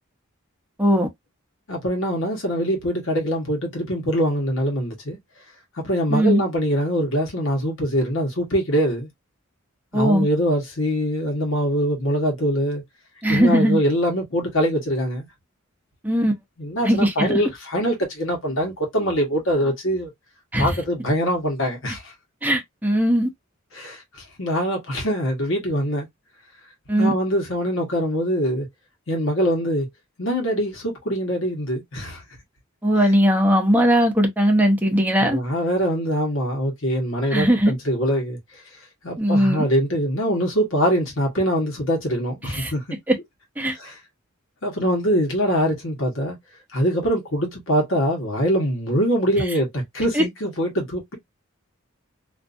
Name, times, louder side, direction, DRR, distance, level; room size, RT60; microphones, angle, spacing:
voice 1, 1.7-5.2 5.8-9.1 9.9-12.8 13.3-15.3 16.6-20.1 20.6-22.1 23.7-24.0 24.4-26.1 27.0-28.7 29.1-29.9 30.2-32.2 35.2-38.4 39.0-42.8 43.8-43.9 44.6-46.4 46.7-51.2, equal, 65° left, 1.2 m, -23 dB
voice 2, 6.1-6.4 9.9-10.2 13.2-13.8 16.0-16.3 16.8-17.4 20.5-20.8 22.4-23.3 26.9-27.1 32.8-35.4 37.3-37.7 39.2-39.6 42.4-42.7 43.1-43.2 43.6-43.8 50.1-50.2, equal, 10° right, 0.7 m, -19 dB
2.6 x 2.5 x 2.5 m
head